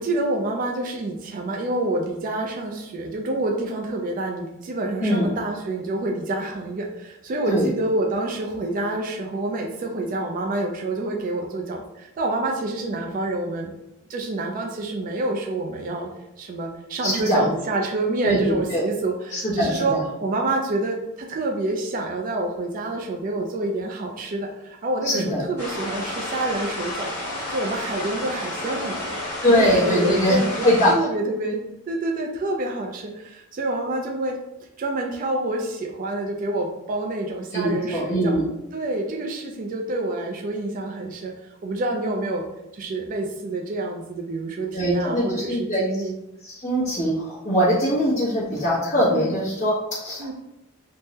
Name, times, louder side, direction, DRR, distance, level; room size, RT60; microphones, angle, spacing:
voice 1, 0.0-13.7 14.1-16.1 16.4-27.1 27.5-29.2 29.5-34.4 34.8-38.4 38.7-41.3 41.6-42.5 42.7-46.1 49.1-49.3 50.2-50.3, right 2 dB, 40° right, 1 dB, 0.3 m, -27 dB
voice 2, 17.0-17.5 18.2-18.8 19.3-20.0 25.0-25.4 29.4-30.3 30.6-30.9 37.5-38.5 44.7-45.8 46.5-50.3, equal, 35° left, -12 dB, 0.9 m, -22 dB
sound 1, 25.6-30.9, left 1 dB, 10° left, 1.0 m, -31 dB
3.5 x 2.0 x 2.7 m, 0.91 s
head